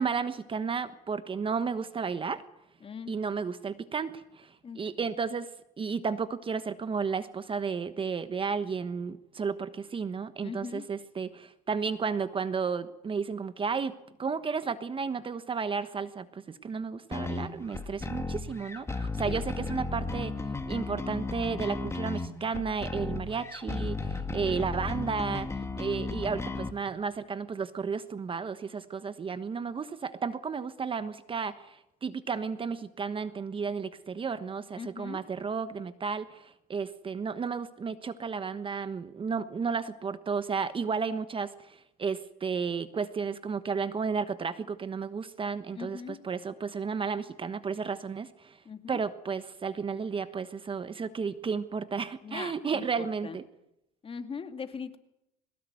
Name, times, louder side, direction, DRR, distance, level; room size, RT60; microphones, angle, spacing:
voice 1, 0.0-2.4 3.1-5.5 5.8-13.9 14.2-25.5 25.8-48.6 48.9-53.5, right 5 dB, 25° right, 12 dB, 1.2 m, -33 dB
voice 2, 2.8-3.1 4.6-4.8 10.4-10.8 19.2-19.4 34.8-35.2 45.8-46.2 48.7-49.0 52.2-52.8 53.2-53.4 54.0-55.0, left 5 dB, 30° left, 8 dB, 2.3 m, -40 dB
sound 1, 17.1-26.7, left 3 dB, 15° left, 2.1 m, -35 dB
22.5 x 20.0 x 9.4 m, 0.85 s
supercardioid pair, 105°, 19 cm